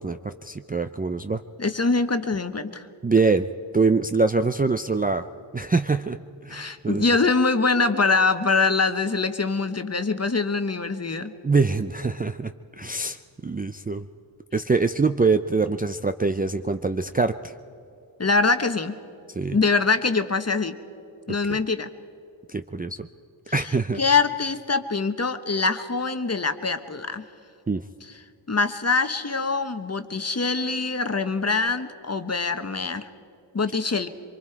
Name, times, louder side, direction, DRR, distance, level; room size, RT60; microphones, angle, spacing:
voice 1, 0.0-1.4 3.0-3.5 3.7-5.3 5.5-7.1 11.4-14.1 14.5-17.5 19.3-19.6 21.5-21.6 22.5-23.1 23.5-24.0 27.7-27.8, right 4 dB, 20° right, 9 dB, 0.5 m, -24 dB
voice 2, 1.6-2.8 6.5-11.3 18.2-18.9 19.5-20.8 21.3-21.9 24.0-27.2 28.5-33.1 33.5-34.1, left 4 dB, 30° left, 9 dB, 1.1 m, -24 dB
24.0 x 23.5 x 4.6 m, 2.7 s
cardioid pair, 55°, 48 cm